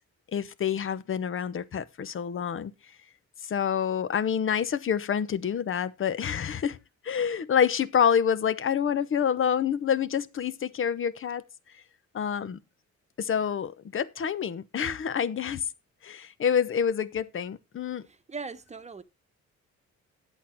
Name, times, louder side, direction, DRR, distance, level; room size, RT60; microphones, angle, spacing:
voice 1, 0.3-2.7 3.5-6.8 7.0-11.4 12.1-12.6 13.2-15.6 16.0-18.0, left 8 dB, 45° left, 0.8 m, -27 dB
voice 2, 18.1-19.0, right 4 dB, 20° right, 1.1 m, -39 dB
8.9 x 8.3 x 4.5 m
cardioid pair, 90°, 30 cm